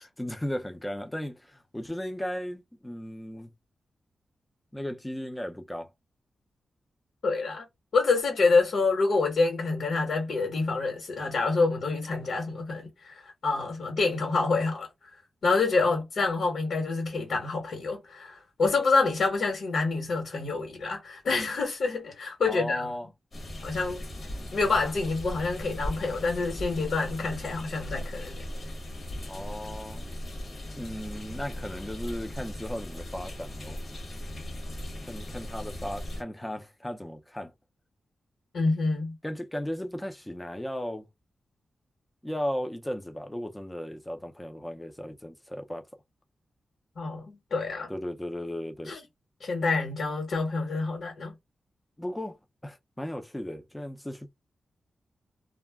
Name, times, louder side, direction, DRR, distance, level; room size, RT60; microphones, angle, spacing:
voice 1, 0.0-3.5 4.7-5.9 22.4-23.1 29.3-30.1 30.6-33.8 35.1-37.5 39.2-41.1 42.2-45.9 47.9-48.9 52.0-52.4 52.6-54.3, equal, 10° left, 0.5 m, -36 dB
voice 2, 7.2-7.7 7.9-15.1 15.4-22.9 23.6-24.0 24.5-28.4 38.5-39.1 47.0-47.9 48.9-49.0 49.4-51.3, left 3 dB, 70° left, 1.2 m, -27 dB
sound 1, 23.3-36.2, left 1 dB, 45° left, 1.0 m, -38 dB
2.3 x 2.1 x 3.4 m
wide cardioid pair, 110°, 0 cm